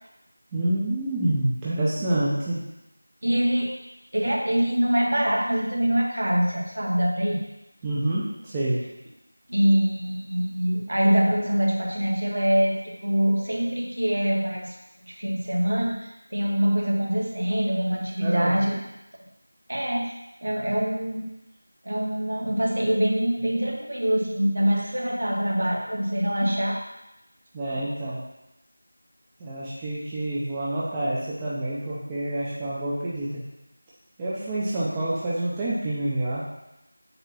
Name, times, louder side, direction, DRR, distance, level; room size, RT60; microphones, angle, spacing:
voice 1, 0.5-2.6 7.8-8.8 18.2-18.6 27.5-28.2 29.4-33.5 34.2-36.4, right 1 dB, 10° right, -8 dB, 0.5 m, -27 dB
voice 2, 3.2-3.7 4.1-7.4 9.5-14.7 15.1-18.7 19.7-20.1 20.4-21.3 21.8-26.8, equal, 65° right, -2 dB, 1.8 m, -24 dB
7.8 x 2.8 x 5.9 m, 0.91 s
figure-of-eight pair, 175°, 0 cm